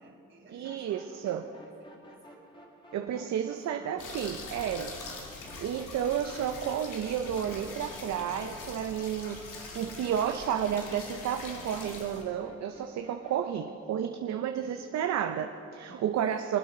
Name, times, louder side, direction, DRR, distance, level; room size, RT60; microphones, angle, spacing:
voice 1, 0.0-2.4 3.0-4.0 5.1-5.3 14.6-14.9 15.9-16.1, right 3 dB, 40° right, 0 dB, 3.0 m, -54 dB
voice 2, 0.5-1.4 2.9-5.0 5.6-16.6, right 9 dB, 60° right, 6 dB, 0.6 m, -32 dB
sound 1, 0.6-13.4, equal, 15° left, 2.0 m, -54 dB
sound 2, 4.0-12.2, left 3 dB, 85° left, 2.3 m, -44 dB
Wind, 4.0-9.6, left 3 dB, 50° left, 1.3 m, -55 dB
24.0 x 8.5 x 3.9 m, 2.7 s
cardioid pair, 90°, 30 cm